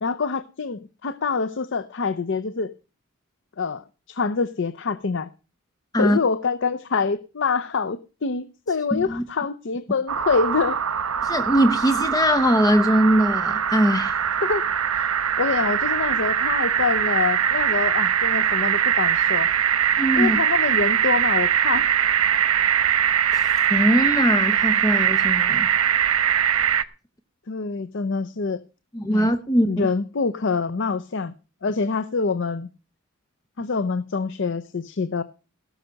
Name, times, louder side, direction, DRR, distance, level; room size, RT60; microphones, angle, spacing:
voice 1, 0.0-2.7 3.6-5.3 5.9-10.8 14.4-14.6 14.9-15.1 15.4-19.5 20.2-21.9 27.5-28.6 29.1-29.3 29.7-31.3 31.6-32.7 33.6-35.2, left 4 dB, 55° left, 13 dB, 0.6 m, -25 dB
voice 2, 8.9-9.2 11.2-14.2 20.0-20.4 23.3-23.4 23.7-25.7 28.9-29.9, equal, 15° left, 11 dB, 0.7 m, -21 dB
sound 1, 10.1-26.8, right 9 dB, 80° right, 0.9 m, -22 dB
17.0 x 6.4 x 6.4 m, 0.33 s
head